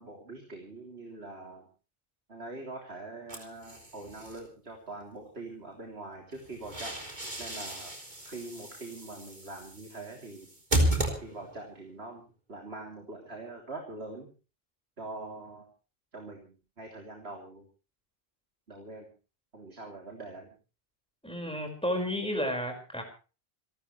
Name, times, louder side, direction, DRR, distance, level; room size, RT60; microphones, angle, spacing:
voice 1, 0.0-1.7 2.3-7.0 7.4-7.9 8.3-10.5 11.0-12.2 12.5-14.3 15.0-15.7 16.1-17.6 18.7-19.1 19.5-20.5, right 2 dB, 85° right, 1 dB, 3.6 m, -43 dB
sound 1, 3.3-4.4 6.3-11.7, right 1 dB, 45° right, 4.1 m, -33 dB
voice 2, 21.2-23.0, equal, 5° left, 3 dB, 5.4 m, -32 dB
28.0 x 13.0 x 3.3 m, 0.35 s
omnidirectional pair, 1.0 m